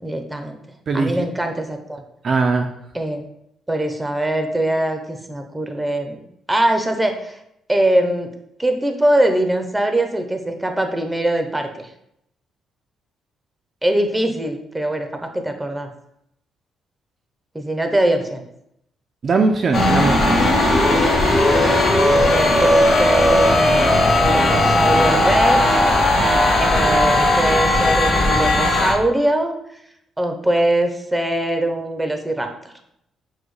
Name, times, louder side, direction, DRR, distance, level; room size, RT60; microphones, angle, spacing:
voice 1, 0.0-0.6 0.9-2.0 2.9-3.2 3.7-6.2 6.5-7.4 7.7-8.3 8.6-11.9 13.8-15.9 17.5-18.4 21.6-21.8 22.3-25.8 26.6-29.5 30.2-32.7, right 1 dB, 10° right, 5 dB, 0.6 m, -22 dB
voice 2, 0.9-1.3 2.2-2.7 19.2-20.4, right 4 dB, 45° right, 4 dB, 0.4 m, -20 dB
sound 1, 19.7-28.9, left 1 dB, 65° left, 1.2 m, -16 dB
6.0 x 2.2 x 3.2 m, 0.76 s
cardioid pair, 90°, 0 cm